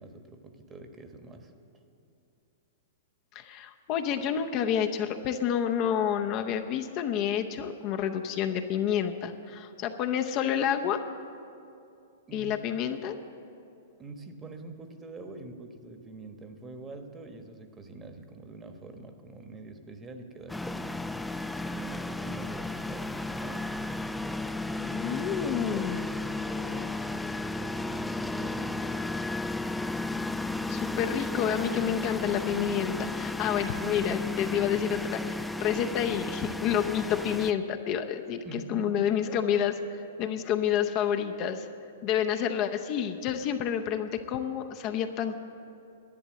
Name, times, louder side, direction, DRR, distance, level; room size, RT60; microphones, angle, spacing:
voice 1, 0.0-1.5 12.3-12.5 14.0-21.0 21.6-23.9 24.7-28.9 38.4-39.0, right 3 dB, 20° right, 6 dB, 1.2 m, -45 dB
voice 2, 3.3-11.0 12.3-13.2 24.9-26.1 30.7-39.8 40.2-41.7 42.0-45.4, left 9 dB, 40° left, 6 dB, 0.7 m, -29 dB
sound 1, 20.5-37.5, left 2 dB, 5° left, 0.4 m, -33 dB
11.0 x 10.5 x 7.6 m, 2.6 s
hypercardioid pair, 115°, 0 cm